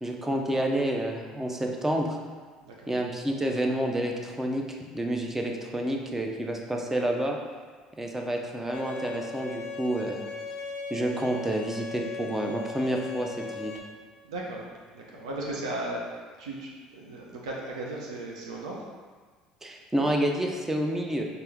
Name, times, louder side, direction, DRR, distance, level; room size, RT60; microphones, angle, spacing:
voice 1, 0.0-2.2 2.9-7.4 8.0-10.2 10.9-13.7 19.6-21.3, right 1 dB, 10° right, 1 dB, 0.6 m, -29 dB
Bowed string instrument, 8.7-13.8, left 4 dB, 70° left, 0.5 m, -38 dB
voice 2, 14.2-14.6 14.9-18.9, right 2 dB, 80° right, -3 dB, 0.5 m, -36 dB
4.3 x 2.6 x 3.4 m, 1.5 s
hypercardioid pair, 60°, 3 cm